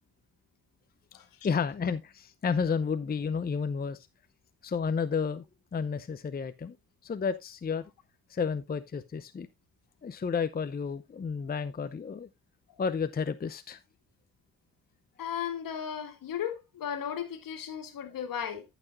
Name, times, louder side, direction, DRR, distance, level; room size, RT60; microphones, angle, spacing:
voice 1, 1.4-4.0 4.6-5.4 5.7-6.8 7.0-7.9 8.3-9.5 10.0-12.3 12.8-13.8, left 5 dB, 25° left, 0.7 m, -31 dB
voice 2, 15.2-18.6, left 8 dB, 65° left, 1.9 m, -35 dB
14.0 x 6.1 x 2.5 m
supercardioid pair, 60°, 36 cm